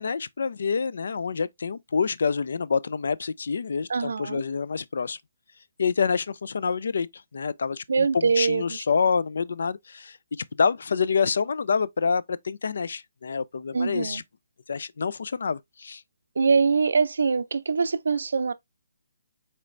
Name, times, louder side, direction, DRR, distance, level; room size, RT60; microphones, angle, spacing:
voice 1, 0.0-5.2 5.8-7.1 7.3-10.2 10.5-14.2 14.7-16.0, left 5 dB, 65° left, 0.3 m, -27 dB
voice 2, 3.9-4.4 7.9-8.8 13.7-14.2 16.4-18.5, right 5 dB, 75° right, 0.4 m, -23 dB
4.3 x 3.1 x 2.5 m
hypercardioid pair, 170°, 0 cm